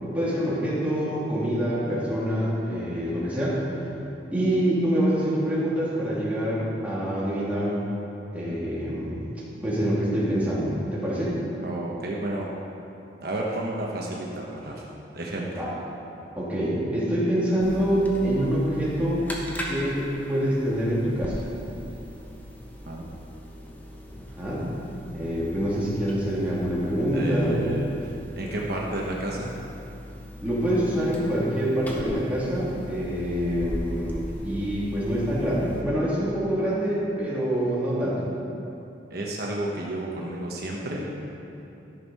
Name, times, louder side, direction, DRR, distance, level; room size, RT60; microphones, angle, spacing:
voice 1, 0.0-3.6 4.3-7.8 8.3-9.2 9.6-11.4 15.6-15.7 16.4-19.3 19.7-21.4 24.3-24.6 25.1-27.8 30.4-38.2, equal, 10° right, -9 dB, 2.7 m, -26 dB
voice 2, 11.6-12.5 13.2-14.8 15.1-15.6 22.9-23.0 27.1-29.5 39.1-41.1, right 1 dB, 60° right, -3 dB, 1.1 m, -31 dB
sound 1, 17.6-35.8, equal, 10° left, 1.2 m, -39 dB
13.5 x 6.4 x 5.5 m, 2.9 s
head